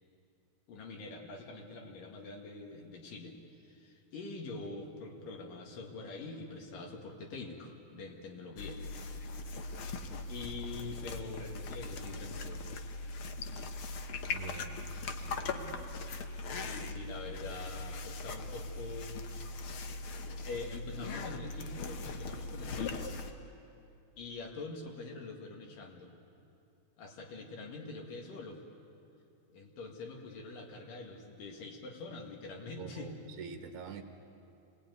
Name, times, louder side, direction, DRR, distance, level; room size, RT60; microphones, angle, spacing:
voice 1, 0.7-3.3 3.6-8.8 10.3-12.8 16.5-19.2 20.5-23.2 24.2-26.1 27.0-28.6 29.5-33.1, left 3 dB, 70° left, 1 dB, 3.6 m, -45 dB
sound 1, 8.6-23.3, left 3 dB, 85° left, 1.1 m, -40 dB
voice 2, 14.2-14.8 15.2-15.9 32.8-34.0, right 6 dB, 65° right, 4 dB, 2.5 m, -46 dB
26.5 x 18.5 x 9.4 m, 2.7 s
omnidirectional pair, 4.1 m